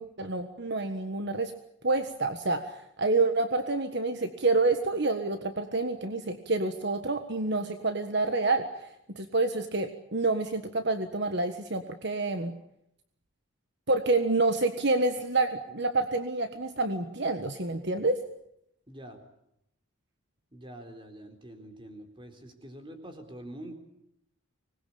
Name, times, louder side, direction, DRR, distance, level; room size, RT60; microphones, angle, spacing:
voice 1, 0.0-1.5 1.8-8.9 9.1-12.5 13.9-18.2, right 3 dB, 50° right, 8 dB, 1.5 m, -28 dB
voice 2, 18.9-19.2 20.5-23.7, right 1 dB, 25° right, 5 dB, 4.0 m, -45 dB
25.5 x 20.5 x 8.7 m, 0.79 s
head